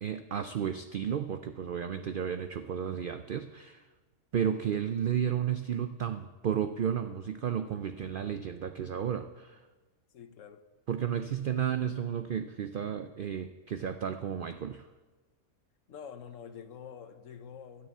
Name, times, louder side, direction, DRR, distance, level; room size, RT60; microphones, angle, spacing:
voice 1, 0.0-3.8 4.3-9.6 10.9-14.9, right 8 dB, 70° right, 9 dB, 0.5 m, -33 dB
voice 2, 10.1-10.6 15.9-17.9, left 7 dB, 65° left, 10 dB, 1.1 m, -46 dB
12.5 x 6.9 x 9.1 m, 1.3 s
omnidirectional pair, 1.5 m